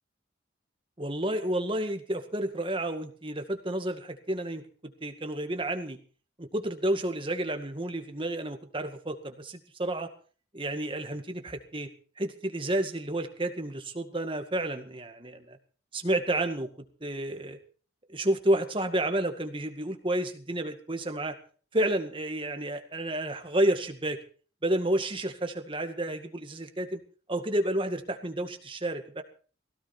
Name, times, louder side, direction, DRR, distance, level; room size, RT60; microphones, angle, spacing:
voice 1, 1.0-6.0 6.4-10.1 10.5-11.9 12.2-15.6 15.9-16.7 17.0-17.6 18.1-21.4 21.7-24.2 24.6-27.0 27.3-29.2, right 1 dB, 30° right, 6 dB, 2.1 m, -30 dB
19.0 x 17.0 x 4.4 m, 0.41 s
head